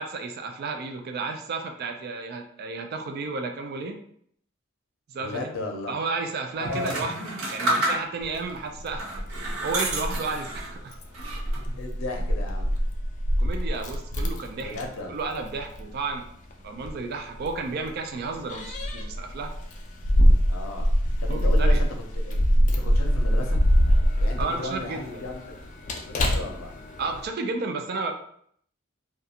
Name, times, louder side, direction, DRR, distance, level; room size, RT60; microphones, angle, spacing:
voice 1, 0.0-4.0 5.1-5.5 5.9-7.1 7.5-11.0 13.4-14.8 15.1-16.2 16.6-19.5 21.3-21.8 24.4-25.2 27.0-28.1, right 3 dB, 50° right, 5 dB, 0.3 m, -32 dB
voice 2, 5.2-6.0 6.6-7.4 11.8-12.7 14.2-14.3 14.6-15.2 20.5-20.9 21.2-21.9 22.2-22.4 22.7-23.6 24.2-25.6 26.0-26.7, left 2 dB, 80° left, 2 dB, 0.6 m, -35 dB
sound 1, 6.6-8.4 8.9-10.7 11.1-11.8, right 1 dB, 70° right, 0.7 m, -30 dB
Keys jangling, 8.2-27.3, equal, 35° left, 0.3 m, -25 dB
2.4 x 2.2 x 2.7 m, 0.65 s
head